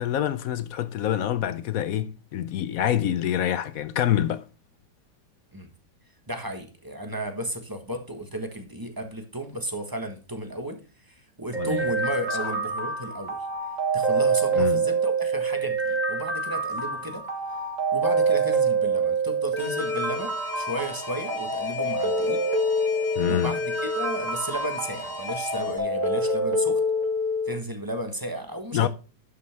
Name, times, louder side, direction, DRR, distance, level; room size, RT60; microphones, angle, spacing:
voice 1, 0.0-4.4 11.6-11.8 12.4-12.5 14.6-14.8 23.2-23.5 28.7-28.9, left 11 dB, 70° left, 0.8 m, -26 dB
voice 2, 6.3-13.4 13.9-17.2 17.9-22.4 23.2-26.8 27.4-28.9, right 1 dB, 15° right, 1.0 m, -34 dB
sound 1, 11.5-27.5, right 2 dB, 45° right, 1.9 m, -26 dB
Alarm, 19.6-25.8, left 4 dB, 20° left, 1.4 m, -38 dB
11.0 x 5.7 x 3.4 m
omnidirectional pair, 2.0 m